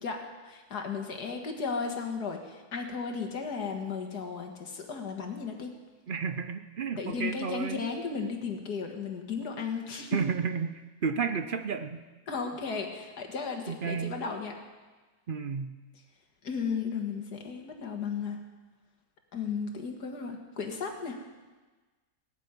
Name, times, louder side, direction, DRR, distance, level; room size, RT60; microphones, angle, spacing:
voice 1, 0.0-5.7 7.0-10.2 12.3-14.5 16.4-18.4 19.3-21.2, left 5 dB, 85° left, 3 dB, 2.3 m, -35 dB
voice 2, 6.1-7.8 10.1-10.7 11.0-12.0 13.7-14.1 15.3-15.7, right 6 dB, 55° right, 9 dB, 0.6 m, -31 dB
18.0 x 7.4 x 9.7 m, 1.3 s
omnidirectional pair, 1.7 m